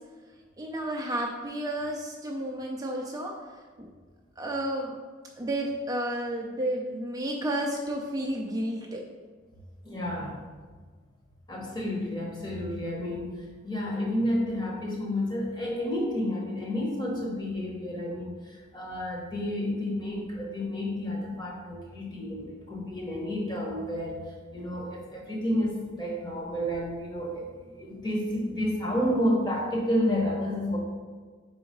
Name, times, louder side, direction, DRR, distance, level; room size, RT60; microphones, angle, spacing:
voice 1, 0.6-3.3 3.8-3.9 4.4-5.0 5.4-9.0, right 1 dB, 20° right, -1 dB, 0.4 m, -31 dB
voice 2, 9.8-10.4 11.5-30.8, left 1 dB, 20° left, -2 dB, 1.1 m, -30 dB
4.8 x 3.8 x 5.2 m, 1.5 s
head